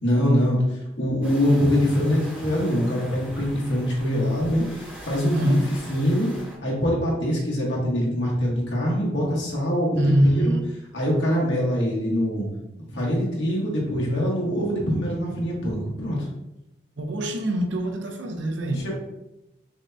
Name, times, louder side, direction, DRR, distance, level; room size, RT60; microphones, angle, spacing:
voice 1, 0.0-0.6 1.0-5.6 5.9-6.3 6.6-10.0 10.5-10.6 10.9-12.5 12.9-16.2 18.7-18.9, equal, 80° left, 1.2 m, -23 dB
sound 1, 1.2-6.6, equal, 10° right, 0.8 m, -42 dB
voice 2, 5.3-5.7 10.0-10.6 17.0-18.9, right 1 dB, 85° right, 0.6 m, -23 dB
6.0 x 2.2 x 2.7 m
head